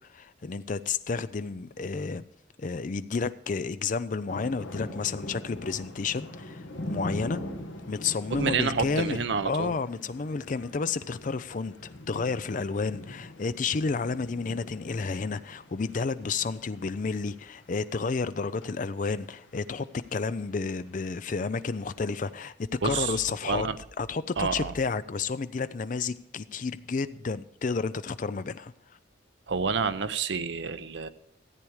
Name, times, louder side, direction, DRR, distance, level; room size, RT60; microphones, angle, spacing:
voice 1, 0.1-2.2 2.6-7.4 7.9-11.7 12.1-22.5 22.8-23.7 24.0-28.7, left 4 dB, 40° left, 0.4 m, -31 dB
sound 1, 4.3-22.4, left 1 dB, 75° left, 1.5 m, -43 dB
voice 2, 8.3-9.7 22.8-23.2 23.4-23.8 24.4-24.7 29.5-31.1, right 5 dB, 65° right, 0.6 m, -28 dB
14.0 x 8.5 x 4.8 m
head